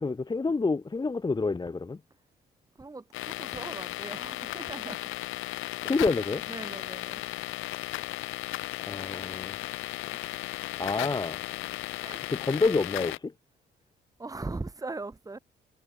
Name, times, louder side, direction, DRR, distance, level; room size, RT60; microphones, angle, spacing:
voice 1, 0.0-2.0 5.8-6.4 8.9-9.5 10.8-11.4 12.3-13.3, left 3 dB, 20° left, 1.1 m, -28 dB
voice 2, 2.8-5.1 6.5-7.2 10.1-10.6 12.0-12.3 14.2-15.4, right 3 dB, 15° right, 1.9 m, -40 dB
sound 1, 3.1-13.2, left 17 dB, 90° left, 0.9 m, -36 dB
cardioid pair, 90°, 20 cm